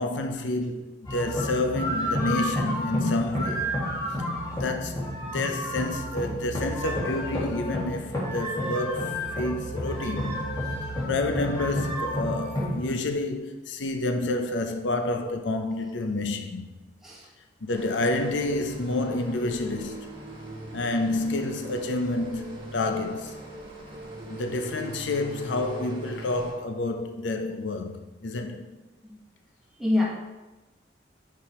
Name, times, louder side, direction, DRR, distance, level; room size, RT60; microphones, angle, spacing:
voice 1, 0.0-3.7 4.5-10.4 11.1-16.7 17.6-20.0 20.7-23.4 24.3-28.7, left 2 dB, 85° left, 0.6 m, -29 dB
sound 1, 1.0-12.9, equal, 20° left, 2.0 m, -30 dB
voice 2, 17.0-17.2 29.0-29.1 29.8-30.1, left 2 dB, ahead, 1.4 m, -24 dB
sound 2, 17.7-26.5, right 1 dB, 30° right, 1.5 m, -40 dB
5.8 x 5.0 x 4.2 m
head